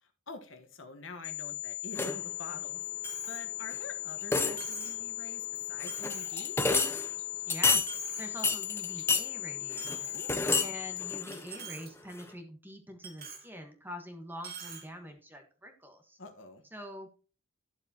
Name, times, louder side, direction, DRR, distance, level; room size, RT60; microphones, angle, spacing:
voice 1, 0.0-2.8 3.3-6.6 10.1-10.4 16.2-16.6, left 3 dB, 65° left, 6 dB, 1.4 m, -47 dB
sound 1, 1.2-11.2, left 18 dB, 85° left, 0.4 m, -38 dB
sound 2, 2.0-2.3 3.7-3.8 4.2-4.8 5.8-7.1 7.5-7.9 8.4-9.3 9.7-10.7 11.0-11.8 12.2-12.3, left 4 dB, 10° left, 0.7 m, -29 dB
Coin (dropping), 3.0-3.4 3.8-3.9 4.6-5.0 5.5-5.6 5.9-6.4 6.9-7.4 7.7-8.4 8.8-9.0 9.8-11.0 11.3-11.9 12.2-12.3 13.0-13.5 14.4-14.8, right 6 dB, 50° right, 2.3 m, -45 dB
voice 2, 7.5-10.2 10.6-16.2 16.7-17.1, equal, 10° right, 5 dB, 1.5 m, -45 dB
12.0 x 7.2 x 3.0 m, 0.37 s
head